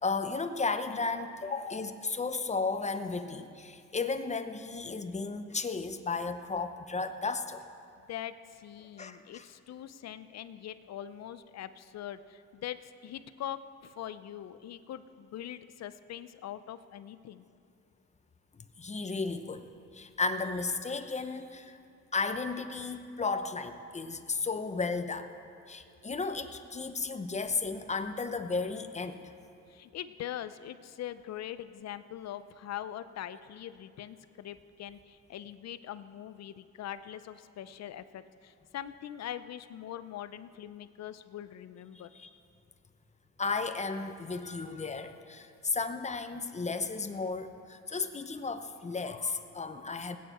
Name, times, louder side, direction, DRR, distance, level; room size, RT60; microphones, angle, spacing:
voice 1, 0.0-7.6 9.0-9.4 18.5-19.7 19.9-21.8 22.1-25.3 25.7-29.3 42.1-42.3 43.4-50.2, left 4 dB, 25° left, 9 dB, 0.8 m, -34 dB
voice 2, 8.1-17.5 29.7-42.1, left 11 dB, 60° left, 13 dB, 0.6 m, -42 dB
19.0 x 9.3 x 4.3 m, 2.5 s
cardioid pair, 90°, 30 cm